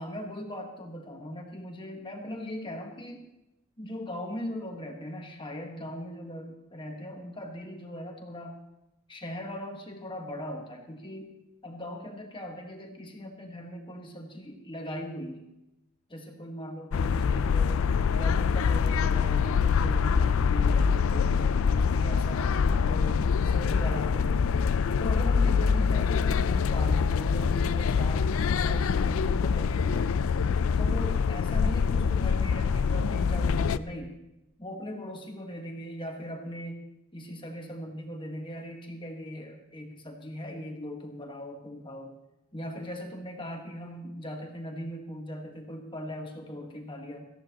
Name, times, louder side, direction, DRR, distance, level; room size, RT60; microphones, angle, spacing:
voice 1, 0.0-3.2 3.8-8.6 9.1-11.4 11.6-15.5 16.1-17.8 18.1-24.4 25.0-30.1 30.8-34.2 34.6-36.8 37.1-42.1 42.5-47.3, equal, 20° left, 2 dB, 1.5 m, -39 dB
sound 1, 16.9-33.8, left 6 dB, 65° left, 0.4 m, -25 dB
18.0 x 14.0 x 2.9 m, 0.92 s
head